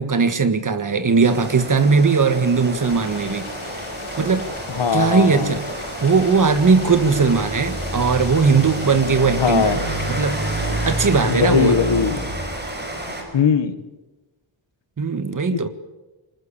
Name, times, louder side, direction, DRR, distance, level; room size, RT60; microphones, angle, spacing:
voice 1, 0.0-3.5 4.2-4.4 4.9-10.4 10.9-11.8 15.0-15.7, right 5 dB, 40° right, 10 dB, 1.7 m, -19 dB
Rain, 1.2-13.2, right 1 dB, 20° right, 5.4 m, -29 dB
sound 1, 2.8-11.2, left 4 dB, 85° left, 5.0 m, -38 dB
voice 2, 4.7-5.6 9.4-9.8 11.3-12.2 13.3-13.7 15.5-15.7, left 7 dB, 65° left, 11 dB, 1.7 m, -20 dB
25.5 x 20.5 x 8.7 m, 1.1 s
wide cardioid pair, 180°, 48 cm